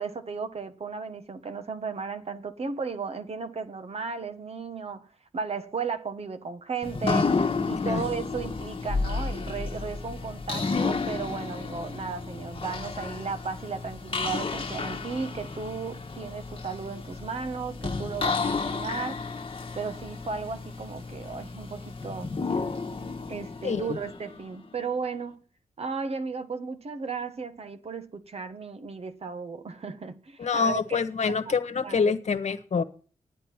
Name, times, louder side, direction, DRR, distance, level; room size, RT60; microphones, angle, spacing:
voice 1, 0.0-5.1 5.3-19.2 19.7-22.3 23.3-25.4 25.8-31.4 31.8-32.1, right 5 dB, 55° right, 1.3 m, -35 dB
sound 1, 6.8-24.7, left 4 dB, 45° left, 1.3 m, -32 dB
voice 2, 30.4-32.8, left 5 dB, 65° left, 1.3 m, -26 dB
10.5 x 9.2 x 5.9 m
cardioid pair, 70°, 13 cm